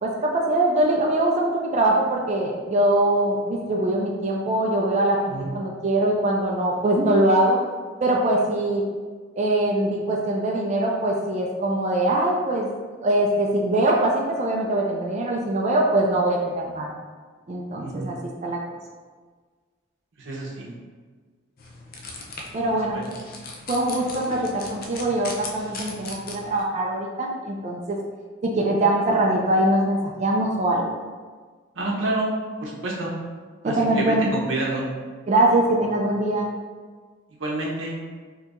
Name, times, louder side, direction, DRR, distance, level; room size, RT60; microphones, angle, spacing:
voice 1, 0.0-7.6 8.0-8.8 9.4-16.9 17.5-18.6 22.5-23.0 23.7-28.0 28.4-30.8 33.6-34.3 35.3-36.5, right 1 dB, 35° right, -1 dB, 0.3 m, -22 dB
voice 2, 17.8-18.2 20.2-20.7 22.9-23.1 31.7-32.3 32.6-33.1 33.6-34.9 37.4-38.0, right 2 dB, 65° right, -3 dB, 0.8 m, -28 dB
sound 1, 21.6-26.6, left 3 dB, 45° left, 0.5 m, -38 dB
4.4 x 2.8 x 2.5 m, 1.5 s
head